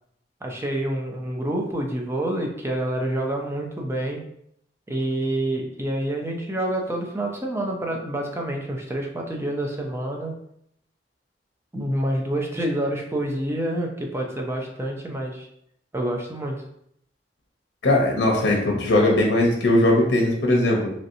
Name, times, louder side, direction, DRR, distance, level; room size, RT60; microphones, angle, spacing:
voice 1, 0.4-4.2 4.9-10.4 11.7-15.5 15.9-16.6, right 1 dB, 15° right, 0 dB, 0.5 m, -27 dB
voice 2, 17.8-20.9, left 1 dB, 80° left, -1 dB, 0.7 m, -19 dB
3.1 x 2.7 x 2.7 m, 0.72 s
head